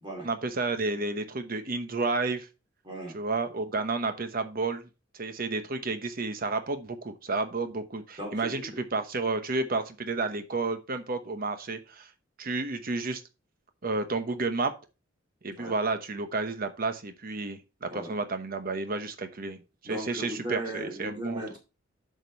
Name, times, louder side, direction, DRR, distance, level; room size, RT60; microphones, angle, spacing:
voice 1, 0.2-2.5 3.1-4.8 5.1-12.1 12.4-13.2 13.8-14.7 15.4-21.4, right 3 dB, 50° right, 9 dB, 1.0 m, -31 dB
voice 2, 2.8-3.2 8.2-8.8 15.6-15.7 17.9-18.1 19.8-21.6, right 1 dB, 25° right, -1 dB, 2.6 m, -37 dB
8.1 x 5.3 x 4.4 m, 0.29 s
head